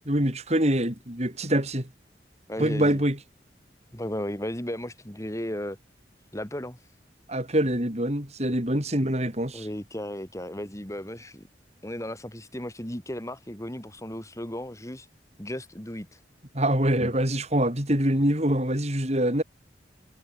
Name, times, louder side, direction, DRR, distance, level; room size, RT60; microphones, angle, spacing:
voice 1, 0.1-1.9 2.6-3.2 7.3-9.7 16.5-19.4, right 1 dB, 40° right, 6.3 m, -25 dB
voice 2, 2.5-3.0 3.9-5.8 6.3-6.8 9.5-11.5 11.8-15.1 15.4-16.2, left 1 dB, 15° left, 3.8 m, -35 dB
head